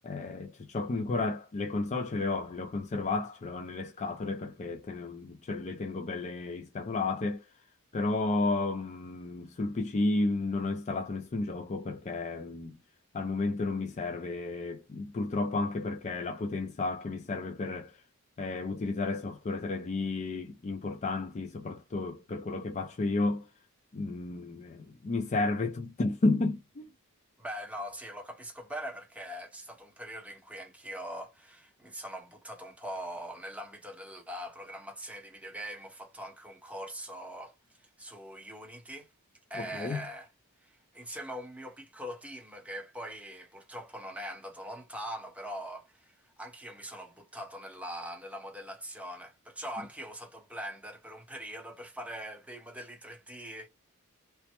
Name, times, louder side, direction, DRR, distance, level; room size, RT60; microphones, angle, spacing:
voice 1, 0.0-7.4 7.9-12.8 13.1-17.9 18.4-23.5 23.9-26.9 39.6-40.0, left 3 dB, 30° left, 0.4 m, -32 dB
voice 2, 27.4-37.6 38.0-39.1 39.5-40.3 40.6-53.7, equal, 5° right, 0.8 m, -42 dB
3.1 x 2.0 x 2.9 m
head